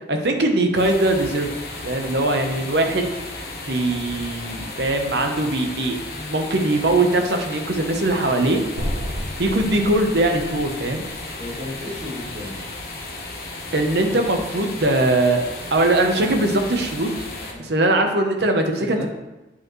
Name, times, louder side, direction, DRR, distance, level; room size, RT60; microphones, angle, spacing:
voice 1, 0.1-1.5 1.8-3.1 3.7-6.0 6.3-8.6 9.4-11.0 13.7-15.4 15.7-17.1 17.6-19.1, right 2 dB, 65° right, 4 dB, 0.8 m, -21 dB
sound 1, 0.8-17.5, left 2 dB, 55° left, 1.1 m, -34 dB
voice 2, 6.1-6.4 11.4-12.6 17.3-17.9 18.8-19.1, left 1 dB, 25° right, -9 dB, 2.4 m, -35 dB
sound 2, 8.8-13.0, equal, 80° right, 1.6 m, -33 dB
8.3 x 5.1 x 3.1 m, 1.1 s
head